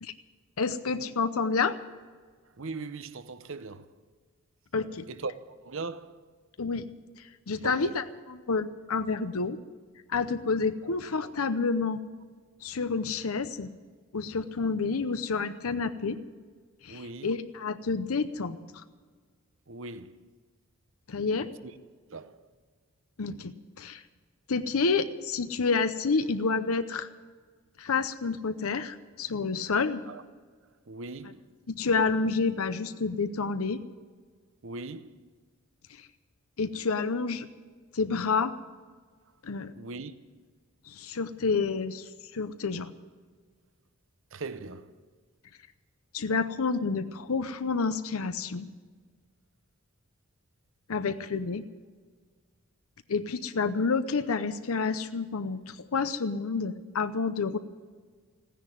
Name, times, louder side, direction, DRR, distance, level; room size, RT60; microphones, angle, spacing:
voice 1, 0.6-1.8 4.7-5.1 6.6-6.9 7.5-9.6 10.1-12.0 12.6-13.7 14.1-16.2 16.8-18.8 21.1-21.5 23.2-24.0 24.5-27.1 27.8-30.0 31.7-33.8 36.6-37.5 37.9-38.5 39.4-39.7 40.9-42.9 46.1-48.7 50.9-51.7 53.1-57.6, left 4 dB, 80° left, 0.7 m, -29 dB
voice 2, 2.6-3.9 5.1-5.3 5.6-6.2 7.6-7.9 16.9-17.3 19.7-20.2 21.6-21.7 22.1-22.4 30.1-30.2 30.9-31.5 34.6-35.2 39.8-40.1 44.3-45.0, right 3 dB, 65° right, 0.8 m, -39 dB
15.5 x 10.0 x 9.3 m
head